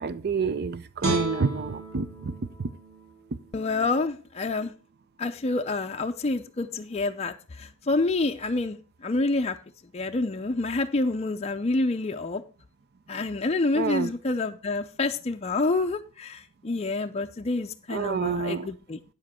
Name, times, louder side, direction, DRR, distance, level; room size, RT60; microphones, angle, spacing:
voice 1, 0.0-2.7 13.7-14.1 17.9-18.7, right 5 dB, 45° right, 0.5 m, -28 dB
Guitar, 1.0-4.2 4.6-4.7, right 1 dB, 80° right, 2.6 m, -35 dB
voice 2, 3.5-4.7 5.2-9.6 9.9-12.4 13.1-19.0, left 3 dB, 30° left, 0.5 m, -28 dB
8.9 x 7.5 x 4.2 m
head